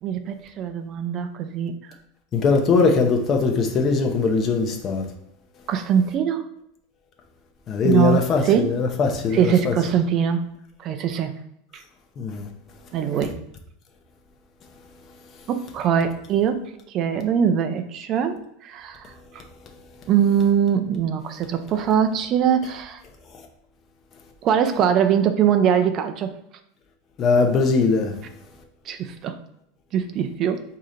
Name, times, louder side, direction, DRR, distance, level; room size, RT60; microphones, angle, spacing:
voice 1, 0.0-1.7 5.7-6.5 7.8-8.8 9.3-10.5 10.8-11.3 11.7-11.8 12.9-13.4 15.5-19.4 20.1-23.0 24.4-26.3 28.9-29.4 29.9-30.6, right 8 dB, 30° right, 0.4 m, -22 dB
voice 2, 2.3-5.1 7.7-9.7 12.2-12.5 27.2-28.1, left 4 dB, 25° left, 0.7 m, -20 dB
4.8 x 2.8 x 3.8 m
supercardioid pair, 165°, 0 cm